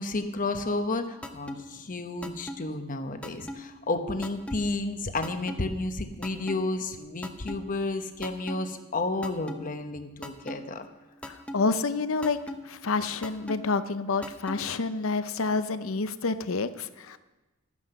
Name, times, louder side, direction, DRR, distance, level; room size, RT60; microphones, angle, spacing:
voice 1, 0.0-10.9, left 2 dB, 40° left, 8 dB, 1.0 m, -31 dB
sound 1, 1.2-1.6 2.2-2.6 3.2-3.6 4.2-4.6 5.2-5.6 6.2-6.6 7.2-7.6 8.2-8.6 9.2-9.6 10.2-10.6 11.2-11.6 12.2-12.6 13.2-13.6 14.2-14.6, equal, 5° left, 0.8 m, -37 dB
voice 2, 11.3-12.4 12.6-17.2, left 4 dB, 65° left, 13 dB, 0.7 m, -28 dB
12.5 x 9.6 x 6.7 m, 1.1 s
head